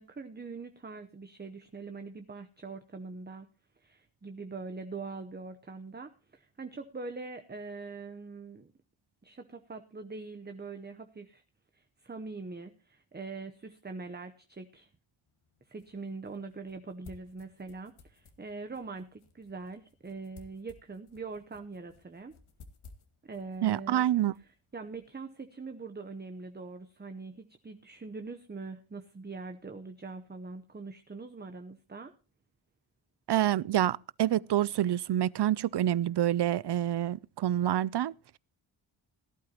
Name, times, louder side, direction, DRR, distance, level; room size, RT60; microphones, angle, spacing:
voice 1, 0.0-3.5 3.8-8.7 9.2-11.4 11.7-14.9 15.7-22.3 23.2-24.1 24.7-32.1, right 3 dB, 20° right, 0.8 m, -43 dB
sound 1, 15.3-25.2, left 4 dB, 75° left, 2.1 m, -58 dB
voice 2, 23.6-24.3 33.3-38.4, right 12 dB, 55° right, 0.5 m, -27 dB
17.5 x 12.0 x 2.9 m
wide cardioid pair, 125°, 50 cm